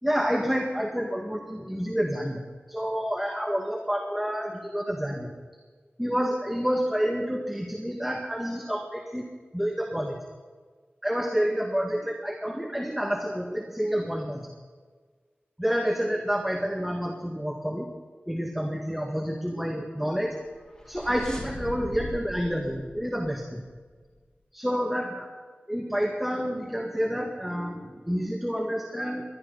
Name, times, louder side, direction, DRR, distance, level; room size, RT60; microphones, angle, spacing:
voice 1, 0.0-2.4 2.7-5.3 6.0-9.2 9.5-10.2 11.0-14.5 15.6-17.9 18.3-20.4 20.9-23.6 24.5-25.3 25.7-29.2, equal, 5° right, 1 dB, 1.8 m, -29 dB
sound 1, 20.4-24.0, left 1 dB, 20° left, 3.7 m, -40 dB
20.5 x 12.5 x 4.0 m, 1.5 s
wide cardioid pair, 50°, 4 cm